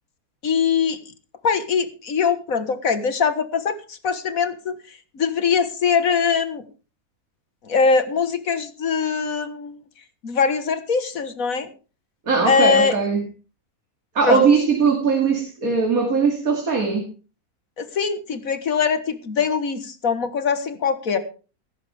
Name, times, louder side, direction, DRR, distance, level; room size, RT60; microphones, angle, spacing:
voice 1, 0.4-1.0 1.4-6.7 7.6-9.8 10.2-11.7 12.4-13.0 14.2-14.4 17.8-21.2, left 6 dB, 65° left, 11 dB, 1.9 m, -22 dB
voice 2, 12.3-13.2 14.1-17.1, right 5 dB, 70° right, 2 dB, 3.0 m, -20 dB
16.5 x 14.0 x 3.4 m, 0.34 s
omnidirectional pair, 1.6 m